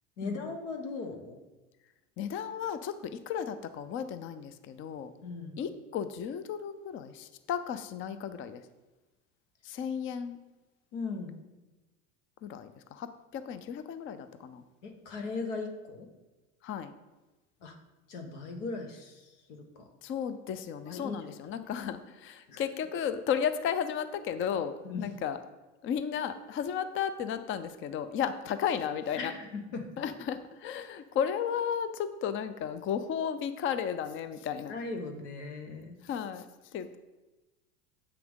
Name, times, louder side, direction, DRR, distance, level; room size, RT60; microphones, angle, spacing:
voice 1, 0.2-1.4 5.2-5.6 10.9-11.4 14.8-16.1 17.6-17.7 18.1-19.9 20.9-21.3 22.5-22.6 24.8-25.0 29.2-29.9 34.7-36.0, left 3 dB, 85° left, 4 dB, 1.4 m, -38 dB
voice 2, 2.2-5.1 5.6-8.6 9.6-10.4 12.4-14.6 16.6-16.9 20.0-25.4 25.8-29.3 30.0-34.8 36.0-36.5 36.7-37.0, left 8 dB, 35° left, 12 dB, 0.5 m, -34 dB
7.9 x 5.9 x 3.7 m, 1.1 s
supercardioid pair, 110°, 35 cm